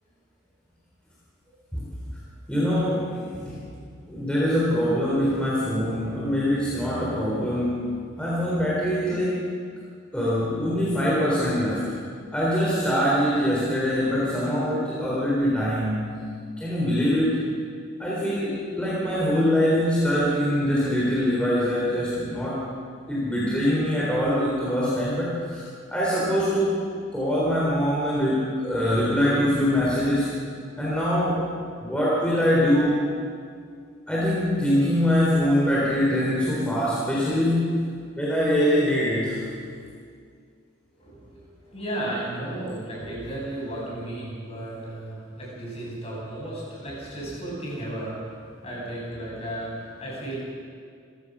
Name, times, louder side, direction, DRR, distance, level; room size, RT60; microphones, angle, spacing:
voice 1, 2.5-3.6 4.1-7.9 8.2-9.4 10.1-11.9 12.3-16.1 16.6-17.4 18.0-22.6 23.1-25.6 25.9-26.8 27.1-30.3 30.8-31.5 31.8-33.0 34.1-39.4, equal, 5° left, -7 dB, 3.6 m, -23 dB
voice 2, 41.0-50.4, right 1 dB, 30° left, -5 dB, 7.4 m, -34 dB
28.0 x 15.5 x 6.2 m, 2.2 s
head